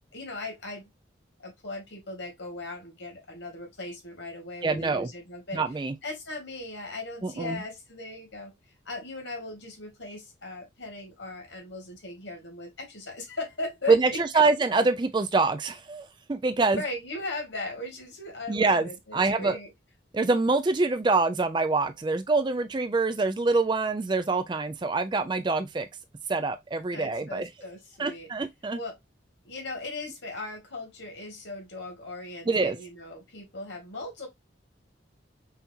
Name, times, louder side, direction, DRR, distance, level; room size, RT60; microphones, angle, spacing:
voice 1, 0.1-0.9 1.4-5.6 6.0-8.5 8.9-14.5 16.7-19.7 26.9-28.3 28.7-29.0 29.4-34.3, left 2 dB, 70° left, 2.2 m, -38 dB
voice 2, 4.6-5.1 5.5-5.9 7.2-7.6 13.9-16.8 18.5-19.6 20.1-25.9 26.3-27.5 28.0-28.8 32.5-32.8, right 3 dB, 25° right, 0.3 m, -25 dB
5.6 x 3.0 x 2.6 m
head